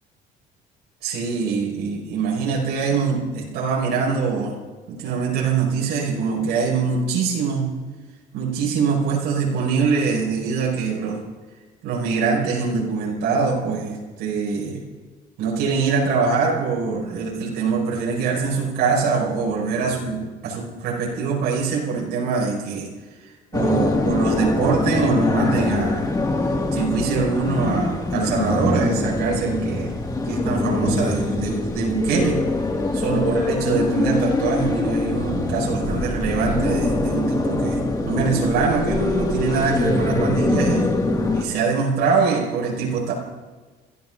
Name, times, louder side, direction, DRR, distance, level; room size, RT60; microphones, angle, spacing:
voice 1, 1.0-4.6 4.9-7.7 8.3-11.2 11.8-14.8 15.4-22.9 23.2-26.1 26.7-29.9 30.2-32.4 32.9-40.9 41.3-43.1, right 5 dB, 85° right, -3 dB, 5.6 m, -23 dB
sound 1, 23.5-41.4, left 2 dB, 20° left, 2.0 m, -23 dB
28.5 x 15.0 x 2.6 m, 1.3 s
cardioid pair, 110°, 17 cm